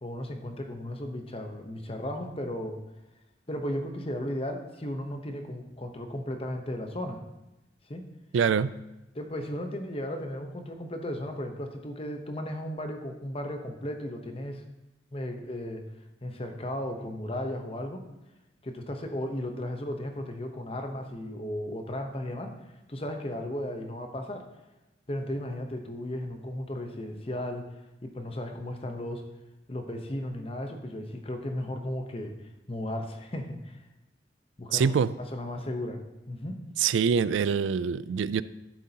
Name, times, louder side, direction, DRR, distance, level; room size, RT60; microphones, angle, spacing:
voice 1, 0.0-2.8 3.5-7.2 7.9-8.0 9.1-14.6 15.1-15.8 16.2-18.0 18.6-22.5 22.9-24.5 25.1-27.7 28.0-29.3 29.7-32.3 32.7-33.8 34.6-36.0 36.3-36.6, left 1 dB, 30° left, 0.9 m, -35 dB
voice 2, 8.3-8.7 34.7-35.1 36.8-38.4, right 6 dB, 80° right, 0.3 m, -24 dB
13.0 x 7.4 x 2.9 m
head